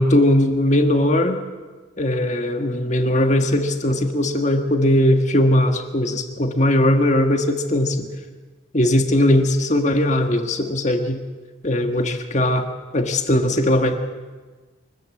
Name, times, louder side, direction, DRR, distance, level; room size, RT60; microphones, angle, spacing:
voice 1, 0.0-1.4 2.0-8.1 8.7-11.2 11.6-12.7 12.9-13.9, left 1 dB, 35° left, 5 dB, 1.7 m, -19 dB
24.0 x 14.0 x 8.5 m, 1.3 s
head